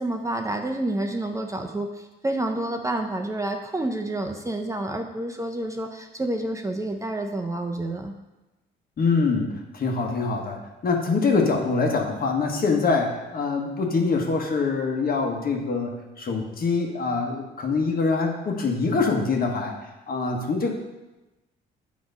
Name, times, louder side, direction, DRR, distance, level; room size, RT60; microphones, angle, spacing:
voice 1, 0.0-8.1, right 1 dB, 15° right, 3 dB, 0.6 m, -29 dB
voice 2, 9.0-15.9 16.2-19.7 20.1-20.7, left 4 dB, 45° left, 2 dB, 1.3 m, -24 dB
7.8 x 3.1 x 5.2 m, 1.1 s
supercardioid pair, 75°, 20 cm